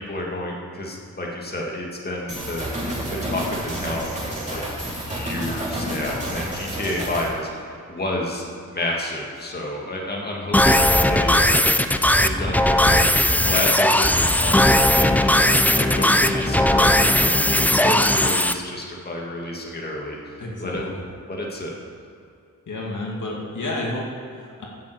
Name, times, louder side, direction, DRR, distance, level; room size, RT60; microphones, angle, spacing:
voice 1, 0.0-2.7 3.2-8.5 8.7-20.9 21.3-21.7, left 1 dB, 30° left, -2 dB, 2.1 m, -30 dB
sound 1, 2.3-7.3, right 1 dB, 20° right, 3.4 m, -30 dB
sound 2, 10.5-18.5, left 1 dB, 5° left, 0.4 m, -18 dB
voice 2, 20.4-21.0 22.7-24.7, left 2 dB, 65° left, -2 dB, 2.2 m, -31 dB
11.0 x 7.4 x 8.1 m, 2.3 s
wide cardioid pair, 105°, 33 cm